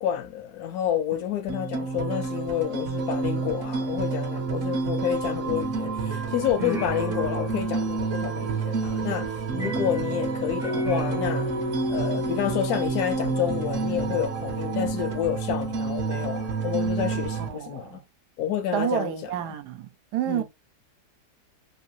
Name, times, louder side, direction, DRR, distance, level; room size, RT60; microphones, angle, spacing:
voice 1, 0.0-11.5 11.9-18.0 18.4-19.1 20.3-20.4, left 10 dB, 70° left, 1.0 m, -29 dB
sound 1, 1.5-17.5, right 4 dB, 60° right, 0.9 m, -29 dB
sound 2, 4.7-14.2, equal, 5° right, 0.3 m, -36 dB
voice 2, 17.4-18.0 18.7-20.4, right 12 dB, 80° right, 1.1 m, -30 dB
3.0 x 2.6 x 2.6 m
omnidirectional pair, 1.8 m